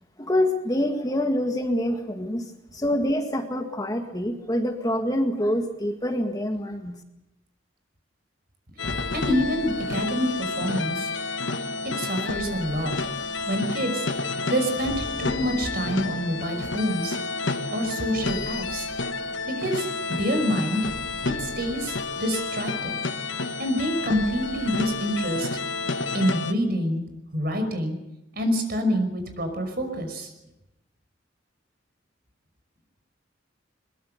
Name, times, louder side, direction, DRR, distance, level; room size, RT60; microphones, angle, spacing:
voice 1, 0.2-7.0, left 1 dB, 20° left, 4 dB, 1.8 m, -26 dB
sound 1, 8.8-26.5, left 3 dB, 70° left, 1.3 m, -30 dB
voice 2, 8.8-11.1 12.0-12.9 13.4-14.1 14.5-17.2 17.7-18.9 19.5-20.9 21.4-23.0 23.6-25.5 26.1-27.0 27.3-28.0 28.3-30.3, equal, 50° right, 6 dB, 5.6 m, -27 dB
22.5 x 22.0 x 6.9 m, 0.90 s
head